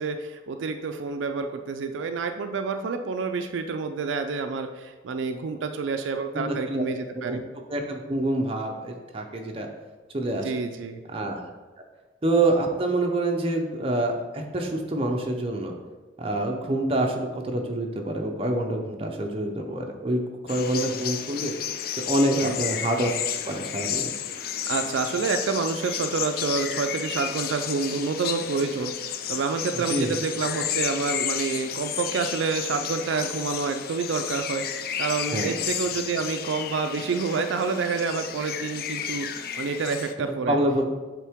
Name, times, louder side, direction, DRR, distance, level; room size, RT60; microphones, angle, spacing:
voice 1, 0.0-7.4 10.4-11.0 22.3-22.6 24.7-40.6, right 4 dB, 80° right, 7 dB, 0.4 m, -28 dB
voice 2, 6.3-6.8 7.1-7.4 7.7-9.7 10.1-10.5 11.1-11.4 12.2-15.7 16.2-21.5 22.1-24.1 29.7-30.1 35.3-35.6 40.5-40.8, right 1 dB, 30° right, 2 dB, 0.6 m, -26 dB
sound 1, 20.5-40.1, left 9 dB, 50° left, 0.3 m, -32 dB
7.3 x 3.7 x 3.5 m, 1.2 s
head